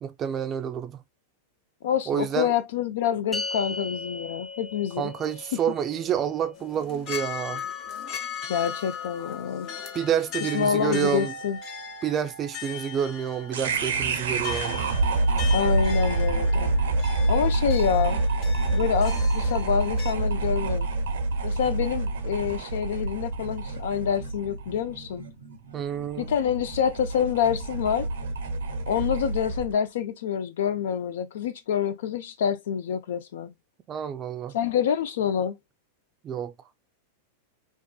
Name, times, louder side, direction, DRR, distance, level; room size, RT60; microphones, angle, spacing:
voice 1, 0.0-1.0 2.1-2.5 5.0-7.6 9.9-11.3 12.0-14.8 25.7-26.3 33.9-34.5 36.2-36.5, right 9 dB, 30° right, 0.4 m, -28 dB
voice 2, 1.8-5.1 8.5-9.8 10.5-11.6 15.5-16.7 17.3-18.2 18.7-20.9 21.4-25.2 26.2-28.1 28.9-33.5 34.5-35.6, left 8 dB, 75° left, 0.5 m, -27 dB
sound 1, 3.3-9.9, left 3 dB, 15° left, 0.6 m, -40 dB
sound 2, 6.6-20.1, left 7 dB, 45° left, 0.8 m, -38 dB
sound 3, 13.5-29.7, right 2 dB, 80° right, 0.6 m, -27 dB
2.6 x 2.5 x 2.2 m
hypercardioid pair, 110°, 0 cm